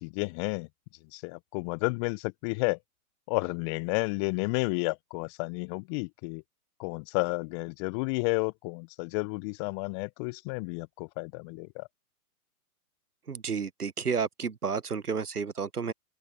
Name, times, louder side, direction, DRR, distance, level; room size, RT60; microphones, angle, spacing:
voice 1, 0.0-0.7 1.1-2.8 3.3-6.4 6.8-11.9, left 30 dB, 20° left, 0.7 m, -31 dB
voice 2, 13.3-15.9, right 6 dB, 90° right, 1.0 m, -31 dB
open air
figure-of-eight pair, 120°, 44 cm